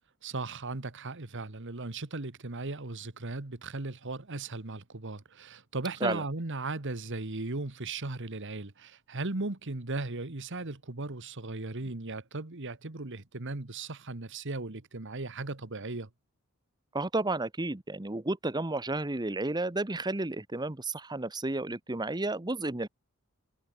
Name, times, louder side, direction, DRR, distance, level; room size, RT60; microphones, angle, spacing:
voice 1, 0.2-16.1, right 3 dB, 55° right, 1.6 m, -37 dB
voice 2, 16.9-22.9, right 2 dB, 20° right, 1.1 m, -32 dB
head